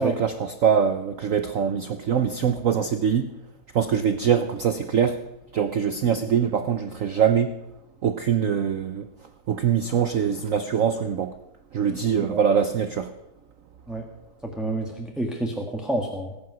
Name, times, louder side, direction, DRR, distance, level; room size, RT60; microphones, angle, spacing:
voice 1, 0.0-3.3 3.7-5.2 5.5-7.5 8.0-9.1 9.5-11.3 11.7-13.1, right 7 dB, 75° right, 0.7 m, -23 dB
voice 2, 14.4-16.3, right 1 dB, ahead, 1.1 m, -28 dB
19.5 x 8.8 x 6.1 m
omnidirectional pair, 2.2 m